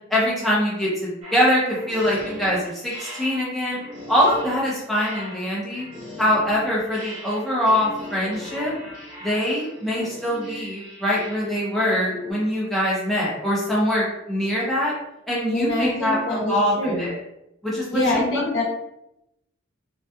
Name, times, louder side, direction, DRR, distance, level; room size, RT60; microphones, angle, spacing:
voice 1, 0.1-3.8 4.1-5.9 6.2-8.7 9.2-14.9 15.3-16.2 16.5-17.2 17.6-18.6, equal, ahead, -7 dB, 0.7 m, -23 dB
sound 1, 1.2-12.3, left 1 dB, 35° right, 1.0 m, -38 dB
voice 2, 15.5-17.1 17.9-18.6, left 1 dB, 70° left, -4 dB, 0.8 m, -24 dB
2.7 x 2.3 x 2.2 m, 0.84 s
head